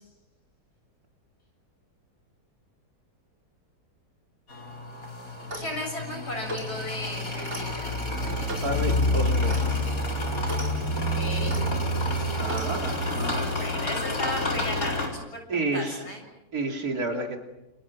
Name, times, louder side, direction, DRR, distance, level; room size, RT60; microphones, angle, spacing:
sound 1, 4.5-15.1, left 1 dB, 60° left, 4.9 m, -28 dB
Clock, 5.4-5.8 6.4-6.7 7.5-7.7 8.5-8.7 9.5-9.7 10.4-10.7 11.5-11.6 12.5-12.7, right 1 dB, 45° right, 5.4 m, -37 dB
voice 1, 5.6-7.9 8.3-8.5 11.2-11.6 13.6-16.2, left 1 dB, 80° left, 2 dB, 7.9 m, -35 dB
voice 2, 8.6-9.8 12.1-13.5 15.5-16.1 16.5-17.4, right 2 dB, 65° right, 3 dB, 3.6 m, -31 dB
29.0 x 28.5 x 6.1 m, 0.96 s
omnidirectional pair, 1.7 m